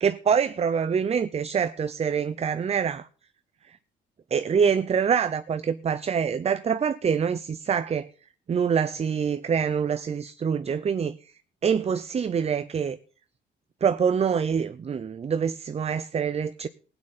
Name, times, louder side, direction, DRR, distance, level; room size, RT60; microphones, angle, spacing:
voice 1, 0.0-3.1 3.7-3.8 4.3-8.1 8.5-11.2 11.6-13.0 13.8-16.7, right 7 dB, 30° right, 0.5 m, -25 dB
16.0 x 8.9 x 4.1 m
cardioid pair, 90°, 20 cm